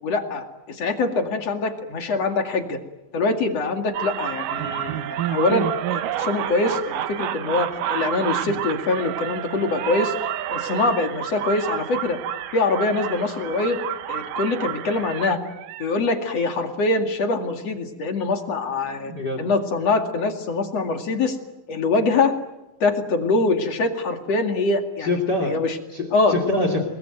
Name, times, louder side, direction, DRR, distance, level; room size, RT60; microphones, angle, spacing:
voice 1, 0.0-2.8 3.1-10.1 10.5-12.2 12.5-13.8 14.1-15.4 15.8-19.1 19.4-21.4 21.7-22.3 22.8-25.1 25.4-25.8 26.1-26.4, left 3 dB, 50° left, 5 dB, 3.1 m, -23 dB
sound 1, 3.9-15.9, right 11 dB, 70° right, 2.6 m, -29 dB
voice 2, 19.0-19.4 25.0-25.6 25.9-26.9, left 2 dB, 30° left, 7 dB, 3.2 m, -24 dB
29.5 x 21.5 x 9.3 m, 1.0 s
omnidirectional pair, 4.0 m